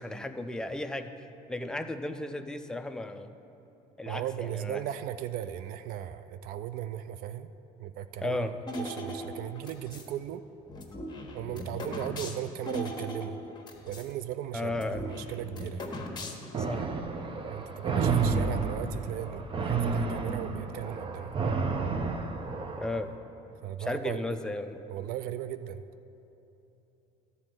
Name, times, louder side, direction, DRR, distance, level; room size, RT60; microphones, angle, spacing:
voice 1, 0.0-3.3 4.0-4.8 8.2-8.5 14.5-15.1 16.6-16.9 22.8-23.1 23.8-24.8, left 2 dB, 5° left, 7 dB, 0.5 m, -35 dB
voice 2, 4.0-7.5 7.8-10.4 11.3-13.4 13.9-15.8 17.4-21.3 23.6-24.2 24.9-25.8, right 11 dB, 65° right, 11 dB, 0.4 m, -37 dB
sound 1, 8.7-10.1 10.7-14.1 14.4-14.5 14.7-16.7, left 1 dB, 25° left, 1.3 m, -39 dB
sound 2, 16.5-23.0, right 4 dB, 35° right, 0.8 m, -30 dB
12.0 x 4.2 x 7.7 m, 3.0 s
supercardioid pair, 100°, 16 cm